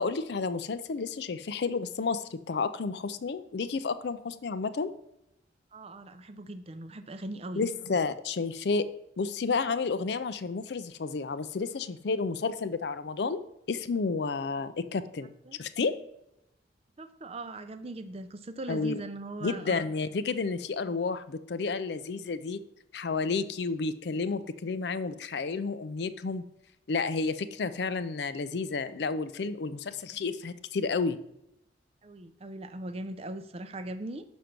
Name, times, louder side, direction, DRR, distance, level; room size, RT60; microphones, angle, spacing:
voice 1, 0.0-4.9 7.6-8.9 9.2-15.3 15.6-15.9 18.7-18.9 19.4-22.6 22.9-26.4 26.9-31.2, left 4 dB, 60° left, 13 dB, 0.4 m, -31 dB
voice 2, 5.7-7.6 15.4-15.6 17.0-19.8 32.0-34.2, right 2 dB, 30° right, 10 dB, 0.5 m, -40 dB
6.3 x 5.2 x 5.9 m, 0.82 s
head